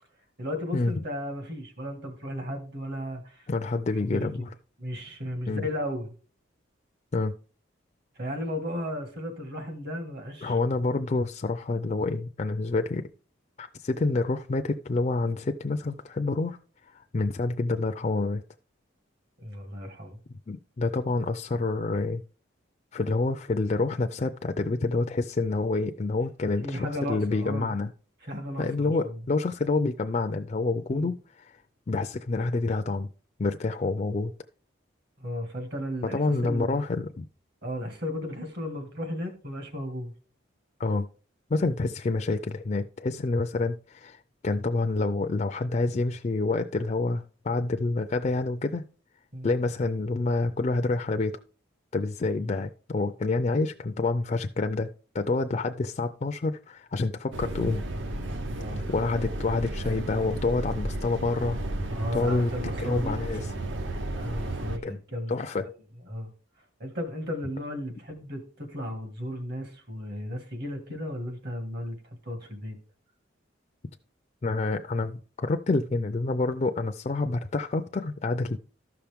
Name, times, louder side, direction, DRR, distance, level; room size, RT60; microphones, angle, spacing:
voice 1, 0.4-3.5 4.0-4.5 4.8-6.1 8.2-10.5 19.4-20.2 26.6-27.8 28.2-29.2 30.9-31.1 35.2-36.8 37.6-40.1 49.3-49.5 52.4-52.5 58.5-58.9 61.9-63.2 64.1-65.7 66.1-66.3 66.8-72.0 72.2-72.8, equal, 55° right, 1.9 m, -35 dB
voice 2, 3.5-4.5 5.5-5.7 7.1-7.3 10.4-13.1 13.6-16.6 16.9-18.4 20.5-22.2 22.9-27.9 28.6-31.6 31.9-33.1 33.4-34.3 36.1-37.3 40.8-41.1 41.5-48.8 49.4-51.4 51.9-54.9 55.1-57.8 58.9-61.6 62.1-62.5 62.8-63.5 64.8-65.0 65.3-65.6 74.4-78.6, left 3 dB, 35° left, 0.4 m, -28 dB
sound 1, 57.3-64.8, right 1 dB, 70° right, 0.8 m, -33 dB
13.5 x 5.8 x 3.5 m
head